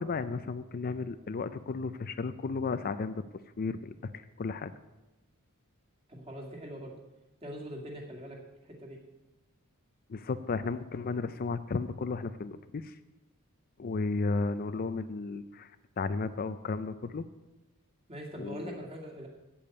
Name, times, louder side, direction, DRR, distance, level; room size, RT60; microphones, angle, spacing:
voice 1, 0.0-3.2 3.6-4.1 4.4-4.7 10.1-13.0 13.8-15.7 16.0-17.3 18.4-18.8, left 4 dB, 40° left, 12 dB, 0.4 m, -34 dB
voice 2, 6.1-7.0 7.4-9.0 18.1-19.3, equal, 25° right, 0 dB, 2.3 m, -42 dB
8.6 x 8.5 x 8.4 m, 1.0 s
head